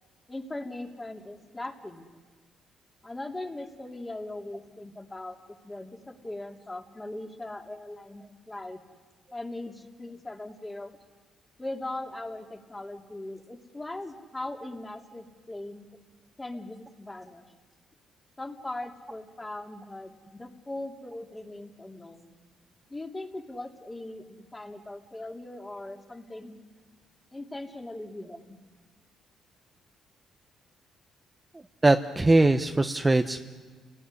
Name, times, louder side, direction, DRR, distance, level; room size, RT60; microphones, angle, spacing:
voice 1, 0.3-2.1 3.0-8.8 9.3-10.9 11.6-15.9 16.4-17.4 18.4-22.3 22.9-26.6 27.3-28.6, left 2 dB, 15° left, 2 dB, 3.1 m, -39 dB
voice 2, 31.8-33.4, right 2 dB, 15° right, 6 dB, 1.1 m, -21 dB
30.0 x 19.0 x 9.9 m, 1.5 s
cardioid pair, 90°, 0 cm